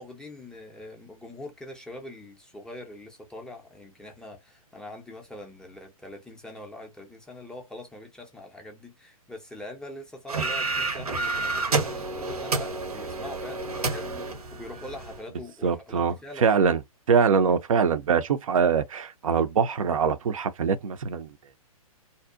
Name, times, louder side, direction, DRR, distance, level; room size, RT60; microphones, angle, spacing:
voice 1, 0.0-16.5, left 1 dB, 5° left, 0.4 m, -43 dB
sound 1, 10.3-15.2, right 3 dB, 80° right, 0.8 m, -29 dB
voice 2, 15.6-16.8 17.1-21.3, right 6 dB, 65° right, 0.5 m, -23 dB
2.6 x 2.0 x 2.4 m
figure-of-eight pair, 120°, 19 cm